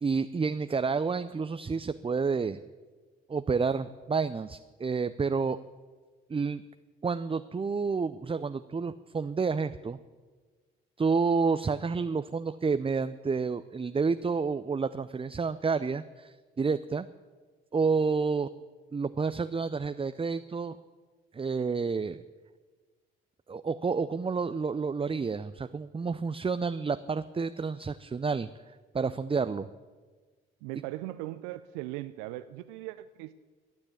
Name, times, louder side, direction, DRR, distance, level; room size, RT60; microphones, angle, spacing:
voice 1, 0.0-2.6 3.3-5.6 6.3-6.6 7.0-10.0 11.0-17.1 17.7-18.5 18.9-20.8 21.3-22.2 23.5-28.5 28.9-29.7, right 5 dB, 20° right, 12 dB, 0.5 m, -29 dB
voice 2, 30.6-33.3, right 16 dB, 75° right, 12 dB, 0.5 m, -39 dB
12.0 x 9.7 x 8.6 m, 1.4 s
hypercardioid pair, 45°, 30 cm